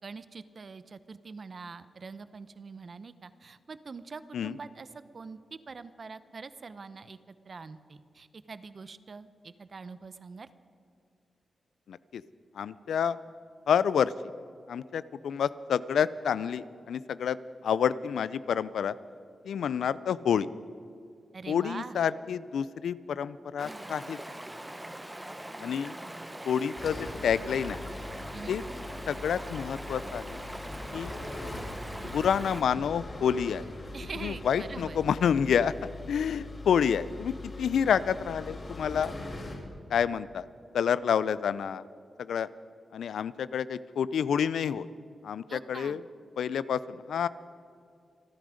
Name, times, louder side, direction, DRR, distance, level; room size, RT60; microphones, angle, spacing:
voice 1, 0.0-10.5 21.3-22.0 28.3-28.6 33.9-35.0 45.5-46.0, right 4 dB, 55° right, 13 dB, 0.8 m, -44 dB
voice 2, 11.9-12.2 12.5-13.2 13.7-14.1 14.7-17.4 17.6-19.0 19.4-20.5 21.5-24.2 25.6-25.9 26.5-27.9 28.5-28.6 29.1-30.4 30.9-31.1 32.0-33.6 34.2-35.7 36.1-39.1 39.9-40.4 40.7-41.8 42.2-42.5 42.9-44.9 45.2-46.0 46.4-47.3, left 8 dB, 85° left, 17 dB, 0.4 m, -28 dB
Stream, 23.6-32.6, right 1 dB, 15° right, 1.0 m, -42 dB
sound 1, 26.8-39.6, left 2 dB, 45° left, 4.8 m, -41 dB
27.0 x 10.5 x 5.1 m, 2.3 s
cardioid pair, 60°, 0 cm